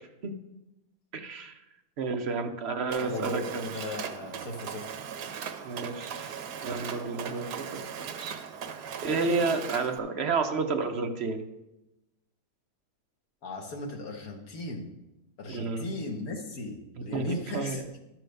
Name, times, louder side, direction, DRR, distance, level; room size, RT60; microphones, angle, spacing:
voice 1, 1.1-1.5 2.0-3.7 5.6-6.3 6.6-8.4 9.0-11.4 15.5-15.9 17.1-17.3 17.5-17.8, right 4 dB, 55° right, 5 dB, 0.8 m, -31 dB
Mechanisms, 2.9-10.0, right 7 dB, 85° right, 1.3 m, -39 dB
voice 2, 3.0-4.9 13.4-14.9 15.4-18.0, left 2 dB, 65° left, 2 dB, 1.8 m, -37 dB
12.0 x 4.6 x 6.4 m, 0.97 s
omnidirectional pair, 1.7 m